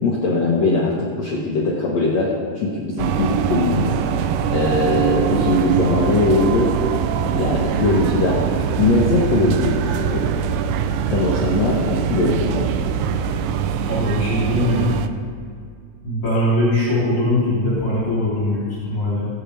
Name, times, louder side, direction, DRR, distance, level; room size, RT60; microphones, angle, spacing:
voice 1, 0.0-3.8 4.5-6.7 7.4-8.4 8.8-10.3 11.1-12.7, left 3 dB, 60° left, -4 dB, 2.0 m, -20 dB
sound 1, 3.0-15.1, right 8 dB, 85° right, 1.9 m, -22 dB
voice 2, 13.9-14.9 16.0-19.3, left 1 dB, 35° left, -10 dB, 3.9 m, -21 dB
20.5 x 9.0 x 3.4 m, 2.2 s
omnidirectional pair, 4.4 m